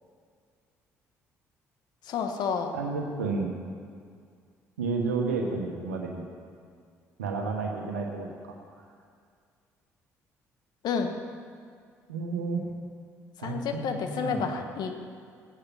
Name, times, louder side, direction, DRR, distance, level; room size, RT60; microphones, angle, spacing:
voice 1, 2.0-2.7 10.8-11.1 13.4-15.0, left 6 dB, 60° left, 6 dB, 1.5 m, -30 dB
voice 2, 2.7-3.5 4.8-6.3 7.2-8.5 12.1-12.6 13.4-14.4, right 4 dB, 90° right, 1 dB, 1.3 m, -31 dB
16.0 x 10.0 x 5.7 m, 2.2 s
hypercardioid pair, 55°, 8 cm